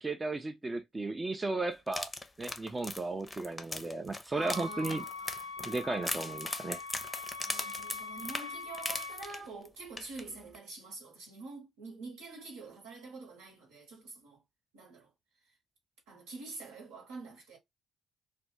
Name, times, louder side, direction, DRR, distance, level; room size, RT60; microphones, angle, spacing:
voice 1, 0.0-2.1 2.4-5.0 5.6-6.8, right 2 dB, 25° right, 0.5 m, -35 dB
sound 1, 1.9-9.7 10.0-10.2 10.5-10.6, left 2 dB, 20° left, 0.6 m, -39 dB
voice 2, 4.3-5.6 7.4-14.4 14.7-15.1 16.1-17.6, right 4 dB, 75° right, 1.1 m, -46 dB
Wind instrument woodwind instrument, 4.4-9.3, left 4 dB, 80° left, 0.4 m, -43 dB
2.4 x 2.2 x 3.1 m
hypercardioid pair, 45°, 0 cm